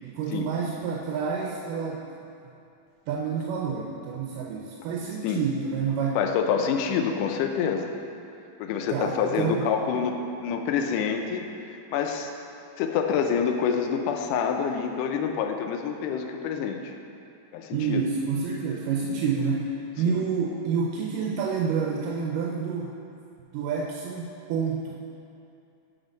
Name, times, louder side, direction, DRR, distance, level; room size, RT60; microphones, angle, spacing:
voice 1, 0.0-2.1 3.1-6.2 8.9-9.7 17.7-23.0 23.5-25.0, right 6 dB, 90° right, -1 dB, 2.2 m, -28 dB
voice 2, 6.2-7.9 8.6-12.3 12.8-16.9 17.5-18.0 20.1-20.2, left 7 dB, 85° left, 4 dB, 2.1 m, -27 dB
8.1 x 4.6 x 5.1 m, 2.6 s
omnidirectional pair, 3.7 m